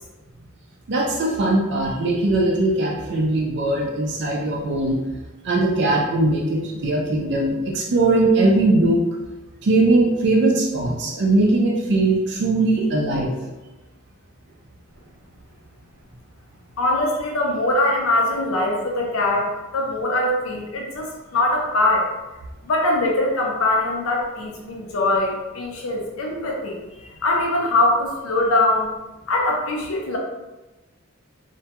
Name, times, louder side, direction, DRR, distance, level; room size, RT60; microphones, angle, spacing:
voice 1, 0.9-5.0 5.4-9.0 9.6-13.3, right 2 dB, 55° right, -3 dB, 0.4 m, -20 dB
voice 2, 16.8-22.1 22.6-28.9 29.3-30.2, left 2 dB, 90° left, -1 dB, 0.5 m, -22 dB
2.2 x 2.1 x 2.8 m, 1.1 s
head